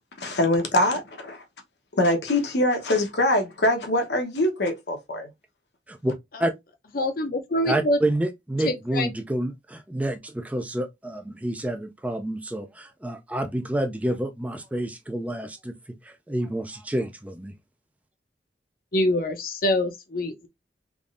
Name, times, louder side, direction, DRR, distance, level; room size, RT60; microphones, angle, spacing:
voice 1, 0.2-1.4 1.9-5.3, left 1 dB, 75° left, 1.1 m, -23 dB
voice 2, 6.9-8.0 8.6-9.1 18.9-20.5, left 1 dB, 55° left, 0.7 m, -25 dB
voice 3, 7.6-15.7 16.0-17.5, right 1 dB, 10° right, 0.4 m, -28 dB
3.5 x 3.1 x 2.5 m
head